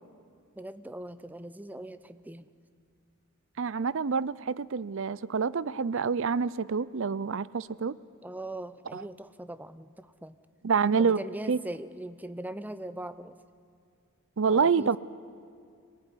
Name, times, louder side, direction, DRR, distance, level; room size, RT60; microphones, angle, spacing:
voice 1, 0.6-2.5 8.2-10.4 11.0-13.4 14.5-15.0, right 1 dB, 10° right, 13 dB, 0.6 m, -40 dB
voice 2, 3.6-7.9 8.9-9.0 10.6-11.2 11.5-11.6 14.4-15.0, right 5 dB, 60° right, 19 dB, 0.5 m, -27 dB
26.0 x 18.5 x 10.0 m, 2.2 s
head